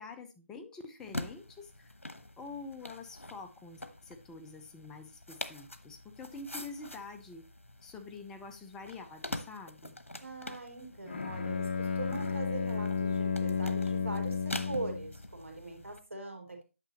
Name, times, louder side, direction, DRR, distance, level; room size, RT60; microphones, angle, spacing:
voice 1, 0.0-2.0 2.4-7.5 7.8-10.0, left 4 dB, 10° left, 5 dB, 0.6 m, -46 dB
sound 1, 1.0-16.0, left 1 dB, 85° left, 1.1 m, -45 dB
voice 2, 10.2-16.7, right 2 dB, 80° right, 4 dB, 3.0 m, -42 dB
Bowed string instrument, 11.1-15.1, left 5 dB, 55° left, 0.8 m, -32 dB
9.0 x 6.7 x 2.9 m, 0.28 s
figure-of-eight pair, 150°, 7 cm